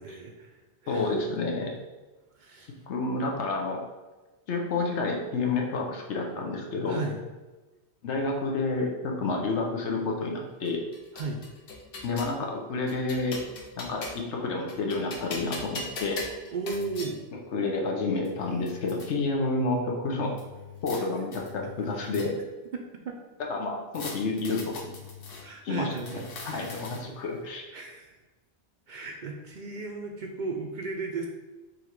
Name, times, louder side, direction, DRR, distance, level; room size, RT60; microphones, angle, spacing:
voice 1, 0.0-1.1 2.3-2.8 6.9-7.2 11.1-11.4 16.5-17.2 20.9-21.1 22.7-23.2 25.4-26.8 27.7-28.1 28.9-31.3, right 3 dB, 55° right, 2 dB, 0.5 m, -36 dB
voice 2, 0.9-1.7 2.9-3.8 4.5-7.0 8.0-10.8 12.0-13.4 13.8-16.2 17.5-20.3 20.8-22.4 23.5-24.7 25.6-27.6, left 3 dB, 80° left, 1 dB, 1.0 m, -29 dB
sound 1, 10.7-12.4 12.9-14.3 14.7-17.1 17.9-18.0 18.3-19.1 20.4-21.0 21.3-22.6 23.9-25.4 25.9-27.2, left 3 dB, 60° left, 0.9 m, -41 dB
3.8 x 2.8 x 4.5 m, 1.2 s
omnidirectional pair, 1.2 m